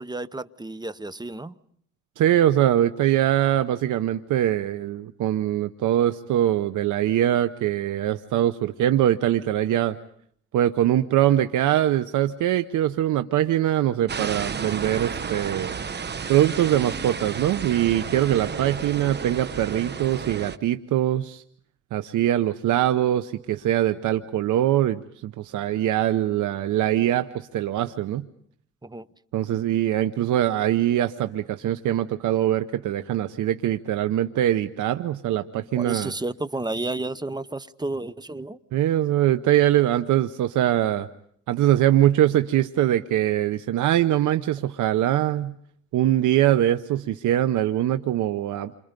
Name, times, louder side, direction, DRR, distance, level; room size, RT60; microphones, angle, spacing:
voice 1, 0.0-1.5 28.8-29.1 35.8-38.6, right 2 dB, 15° right, 15 dB, 0.9 m, -31 dB
voice 2, 2.2-10.0 10.5-15.8 16.3-21.4 21.9-28.2 29.3-36.1 38.7-41.1 41.5-45.5 45.9-48.7, right 12 dB, 80° right, 11 dB, 0.9 m, -22 dB
sound 1, 14.1-20.6, right 6 dB, 35° right, 1.1 m, -32 dB
29.0 x 26.5 x 5.2 m, 0.65 s
cardioid pair, 90°, 30 cm